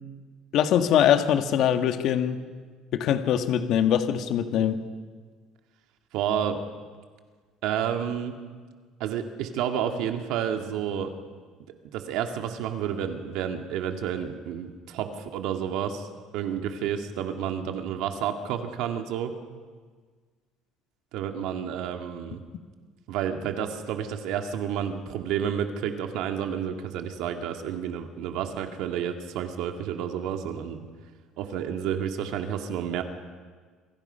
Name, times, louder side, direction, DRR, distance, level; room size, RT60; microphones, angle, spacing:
voice 1, 0.5-2.4 2.9-4.8, left 9 dB, 55° left, 7 dB, 1.6 m, -22 dB
voice 2, 6.1-6.6 7.6-8.3 9.0-11.1 11.9-16.1 16.3-19.3 21.1-22.4 23.1-30.8 31.4-33.0, right 9 dB, 70° right, 5 dB, 2.0 m, -30 dB
27.5 x 25.5 x 5.7 m, 1.5 s
cardioid pair, 155°, 0 cm